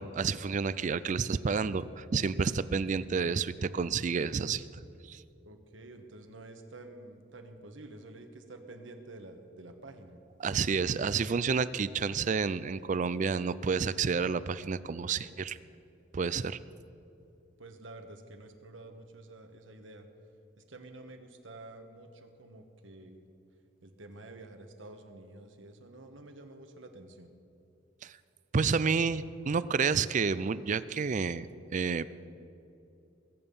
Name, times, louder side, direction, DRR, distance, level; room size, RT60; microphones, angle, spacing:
voice 1, 0.0-4.8 5.1-5.2 10.4-15.6 16.1-16.6 28.0-28.1 28.5-31.5 31.7-32.0, right 5 dB, 40° right, 17 dB, 0.4 m, -30 dB
voice 2, 5.4-10.2 17.6-20.1 20.6-23.2 23.8-27.3, right 2 dB, 70° right, 6 dB, 1.3 m, -49 dB
21.0 x 8.8 x 5.5 m, 2.8 s
head